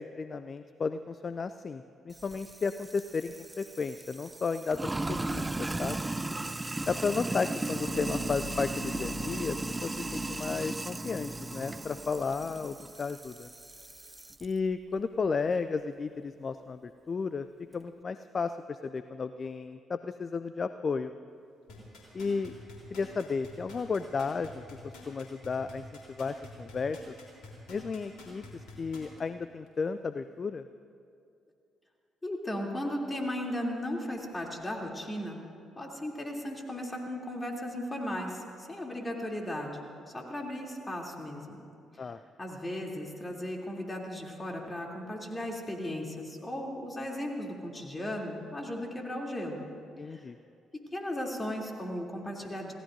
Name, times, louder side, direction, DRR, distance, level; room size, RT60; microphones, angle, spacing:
voice 1, 0.0-6.0 6.9-13.5 14.4-17.5 17.7-21.1 22.1-22.5 22.9-27.1 27.7-28.4 28.8-30.7 42.0-42.2 50.0-50.4, left 4 dB, 40° left, 12 dB, 0.4 m, -33 dB
Sink (filling or washing), 2.1-14.5, right 2 dB, 20° right, 0.6 m, -36 dB
sound 1, 7.8-14.1 14.5-14.8, left 6 dB, 85° left, 0.7 m, -48 dB
sound 2, 21.7-29.2 29.7-29.8, left 3 dB, 65° left, 3.5 m, -48 dB
voice 2, 32.2-35.4 35.7-41.6 41.9-42.1 42.4-49.6 50.0-50.3 50.7-52.7, left 1 dB, 20° left, 0 dB, 3.0 m, -36 dB
27.5 x 16.5 x 2.7 m, 2.5 s
figure-of-eight pair, 45°, 0 cm